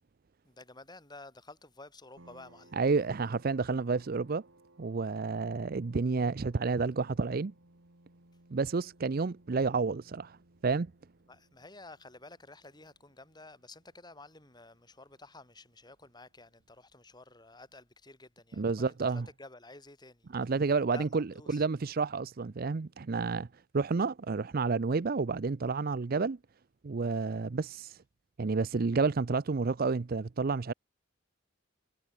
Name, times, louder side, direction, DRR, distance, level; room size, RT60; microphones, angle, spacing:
voice 1, 0.4-2.8 3.8-4.0 11.3-20.3 20.9-21.6, left 2 dB, 20° left, 5.6 m, -52 dB
sound 1, 2.2-15.4, right 1 dB, 70° right, 3.0 m, -62 dB
voice 2, 2.7-4.4 4.8-7.5 8.5-10.4 10.6-10.9 18.6-19.3 20.3-23.5 23.7-26.4 26.8-28.0 28.4-30.7, right 4 dB, 45° right, 0.5 m, -30 dB
head